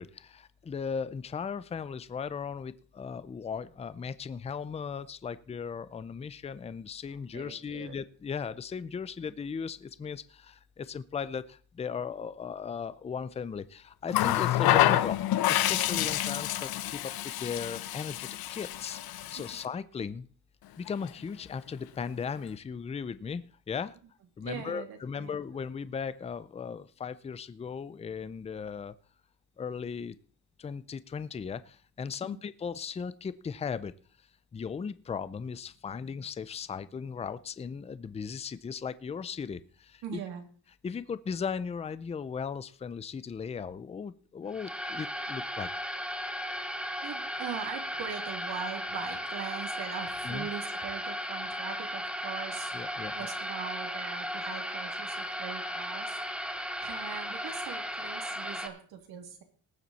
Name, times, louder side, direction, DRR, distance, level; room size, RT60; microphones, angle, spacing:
voice 1, 0.0-19.0 19.3-20.3 20.8-24.0 24.4-28.9 29.6-30.2 30.6-33.9 34.5-40.2 40.8-45.7 50.2-50.5 52.7-53.1, left 6 dB, 15° left, 15 dB, 0.5 m, -37 dB
voice 2, 7.1-7.9 14.3-14.5 24.4-25.3 32.2-32.4 40.0-40.4 47.0-52.7 53.1-56.2 56.8-59.4, right 8 dB, 75° right, 4 dB, 2.8 m, -41 dB
Water tap faucet, 14.1-19.6 20.9-21.1, left 13 dB, 70° left, 0.8 m, -28 dB
sound 1, 44.5-58.7, equal, 5° right, 1.3 m, -36 dB
19.0 x 7.4 x 4.2 m, 0.42 s
cardioid pair, 130°, 38 cm